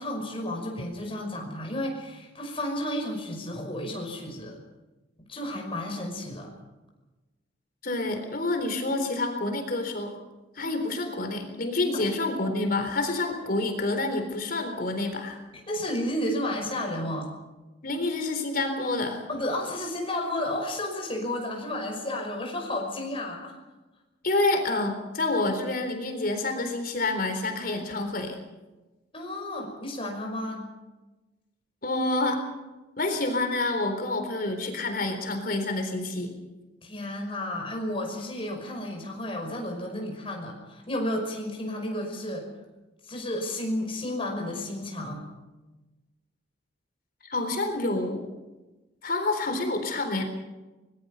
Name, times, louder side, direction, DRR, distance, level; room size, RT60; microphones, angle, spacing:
voice 1, 0.0-4.6 5.3-6.5 11.9-12.0 15.7-17.3 19.3-23.6 29.1-30.7 36.8-42.5 43.1-45.3, left 1 dB, 30° left, 1 dB, 5.6 m, -32 dB
voice 2, 7.8-10.2 10.6-15.4 17.8-19.2 24.2-28.4 31.8-32.4 33.0-36.3 47.2-48.3 49.0-50.2, left 2 dB, 50° left, 5 dB, 3.9 m, -28 dB
24.5 x 21.0 x 5.6 m, 1.1 s
head